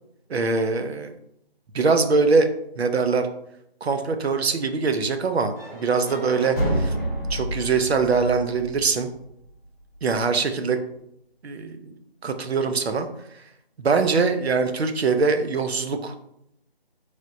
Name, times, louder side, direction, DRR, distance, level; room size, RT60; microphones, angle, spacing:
voice 1, 0.3-1.1 1.7-2.5 2.8-3.3 3.8-6.9 7.3-9.1 10.0-10.8 11.4-11.9 12.2-13.1 13.8-16.1, right 4 dB, 80° right, 7 dB, 0.6 m, -23 dB
sound 1, 5.6-9.5, right 1 dB, 20° left, 1.0 m, -29 dB
3.2 x 3.0 x 2.6 m, 0.75 s
figure-of-eight pair, 175°, 31 cm